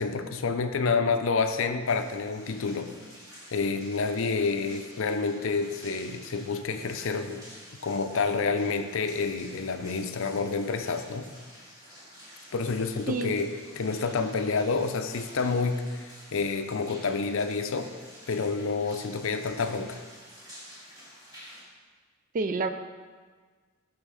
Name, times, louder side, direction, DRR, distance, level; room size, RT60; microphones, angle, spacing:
voice 1, 0.0-2.9 3.5-7.4 7.8-11.3 12.5-17.9 18.3-20.0, left 4 dB, 60° left, 8 dB, 0.5 m, -28 dB
sound 1, 1.8-21.6, equal, 15° right, 2.0 m, -50 dB
voice 2, 13.1-13.4 22.3-22.7, right 3 dB, 40° right, 9 dB, 0.4 m, -28 dB
8.9 x 4.9 x 4.9 m, 1.5 s
head